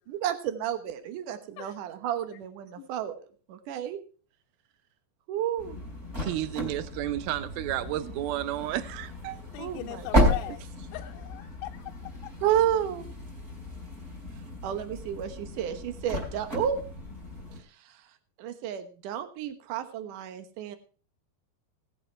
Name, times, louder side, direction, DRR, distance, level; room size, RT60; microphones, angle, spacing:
voice 1, 0.1-3.1 3.5-4.0 5.3-5.8 9.6-10.6 12.4-13.1 14.6-16.8 18.4-20.8, right 10 dB, 65° right, 2.2 m, -31 dB
sound 1, 5.6-17.6, left 1 dB, 15° right, 3.8 m, -33 dB
voice 2, 6.2-9.4, right 14 dB, 90° right, 2.1 m, -32 dB
voice 3, 9.5-10.6 10.9-12.3, left 15 dB, 85° left, 3.0 m, -40 dB
18.5 x 8.0 x 4.5 m
omnidirectional pair, 5.1 m